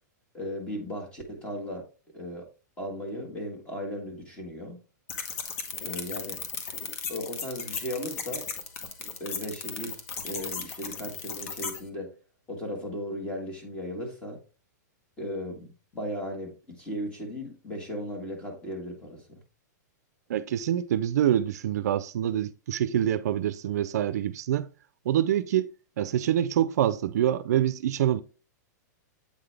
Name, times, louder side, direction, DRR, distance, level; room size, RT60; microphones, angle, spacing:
voice 1, 0.3-1.8 2.1-2.4 2.8-4.8 5.8-6.4 7.1-8.4 9.2-12.1 12.5-14.4 15.2-19.4, equal, 10° left, 1.5 m, -36 dB
sound 1, 5.1-11.8, left 5 dB, 50° left, 1.2 m, -36 dB
voice 2, 20.3-24.7 25.1-25.7 26.0-28.2, right 11 dB, 60° right, 0.4 m, -26 dB
8.3 x 3.9 x 3.3 m
supercardioid pair, 170°, 10 cm